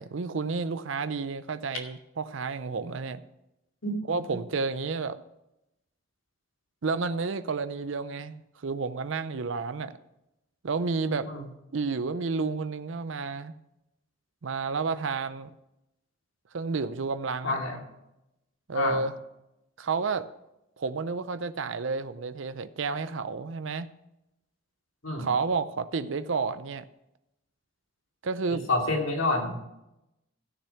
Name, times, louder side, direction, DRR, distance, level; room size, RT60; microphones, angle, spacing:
voice 1, 0.0-3.3 4.1-5.2 6.8-10.0 10.6-11.3 11.7-13.5 14.4-15.5 16.5-17.6 18.7-19.1 19.8-20.3 20.8-23.9 25.2-26.8 28.2-28.6, right 4 dB, 65° right, 0.5 m, -31 dB
voice 2, 3.8-4.4 11.2-11.5 17.4-17.8 18.7-19.0 25.0-25.3 28.5-29.6, left 2 dB, 70° left, 2.5 m, -29 dB
13.5 x 6.8 x 5.8 m
head